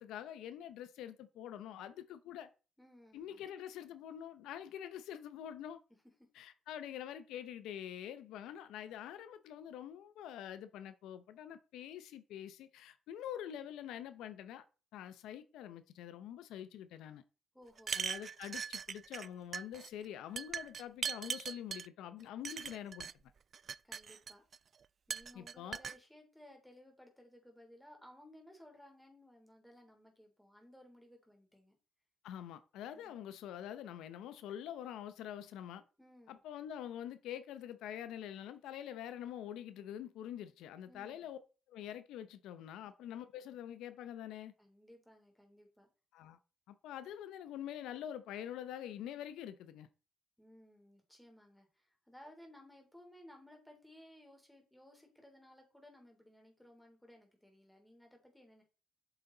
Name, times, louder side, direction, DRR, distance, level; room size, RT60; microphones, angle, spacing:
voice 1, 0.0-2.5 3.1-5.8 6.3-14.6 14.9-17.2 17.9-23.1 25.3-25.8 32.2-35.8 36.3-41.4 41.7-44.5 46.1-46.4 46.7-49.9, left 10 dB, 90° left, 0.7 m, -46 dB
voice 2, 2.8-3.5 17.5-18.0 23.8-24.4 25.1-31.7 32.9-33.2 36.0-36.4 40.9-41.3 44.6-45.9 50.4-58.6, left 1 dB, 5° left, 3.3 m, -59 dB
sound 1, 17.8-19.3 19.5-19.9 20.4-21.9 22.4-23.1 23.5-24.6 25.1-26.0, right 6 dB, 50° right, 0.3 m, -40 dB
8.4 x 6.9 x 3.9 m
cardioid pair, 90°, 0 cm